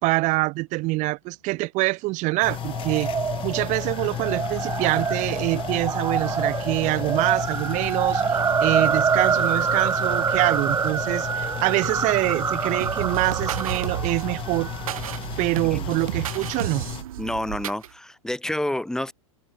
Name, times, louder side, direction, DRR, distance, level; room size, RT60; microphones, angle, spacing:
voice 1, 0.0-3.1 3.4-14.7 15.4-16.8, right 22 dB, 45° right, 2.2 m, -25 dB
sound 1, 2.4-17.0, left 12 dB, 30° left, 1.2 m, -34 dB
sound 2, 2.6-15.0, right 6 dB, 15° right, 1.1 m, -26 dB
sound 3, 12.8-17.9, right 12 dB, 75° right, 2.2 m, -32 dB
voice 2, 15.6-16.0 17.2-19.1, left 1 dB, 5° left, 4.5 m, -29 dB
hypercardioid pair, 120°, 18 cm